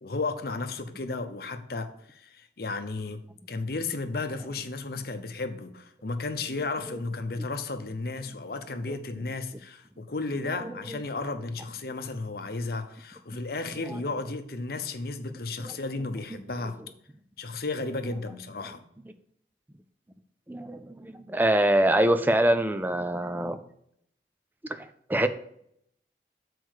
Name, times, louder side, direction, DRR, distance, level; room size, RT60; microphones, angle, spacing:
voice 1, 0.0-3.2 3.5-16.8 17.4-18.8, left 3 dB, 55° left, 8 dB, 0.8 m, -34 dB
voice 2, 10.6-11.0 13.9-14.0 15.6-15.7 20.5-23.6 24.7-25.3, right 1 dB, 10° right, 10 dB, 0.4 m, -25 dB
6.2 x 4.6 x 6.5 m, 0.71 s
head